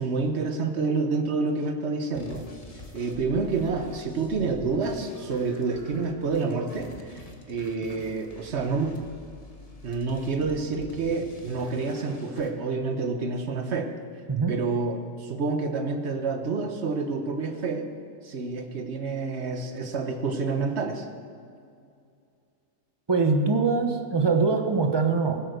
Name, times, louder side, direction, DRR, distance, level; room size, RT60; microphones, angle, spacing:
voice 1, 0.0-2.4 2.9-7.2 7.5-8.9 9.8-13.9 14.5-17.9 18.2-21.1, right 4 dB, 60° right, 6 dB, 1.4 m, -28 dB
sound 1, 2.1-12.5, left 2 dB, 30° left, 1.4 m, -46 dB
voice 2, 23.1-25.4, right 4 dB, 20° right, 5 dB, 0.9 m, -23 dB
16.0 x 9.2 x 6.6 m, 2.3 s
omnidirectional pair, 1.3 m